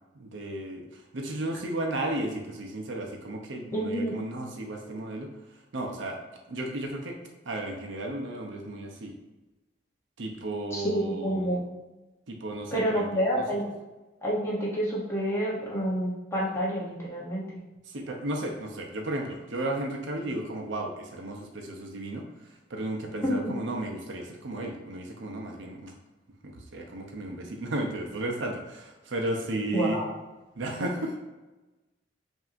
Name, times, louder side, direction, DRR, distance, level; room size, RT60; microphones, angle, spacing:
voice 1, 0.1-6.2 6.5-7.2 7.5-9.1 10.2-11.6 12.3-13.4 17.8-25.9 26.4-30.0 30.6-31.2, right 1 dB, 70° right, 2 dB, 0.6 m, -34 dB
voice 2, 3.7-4.1 10.7-11.6 12.7-13.7 14.2-17.6 23.2-23.5 29.7-30.1, equal, 15° left, -6 dB, 0.8 m, -28 dB
5.7 x 2.7 x 2.5 m, 1.1 s
head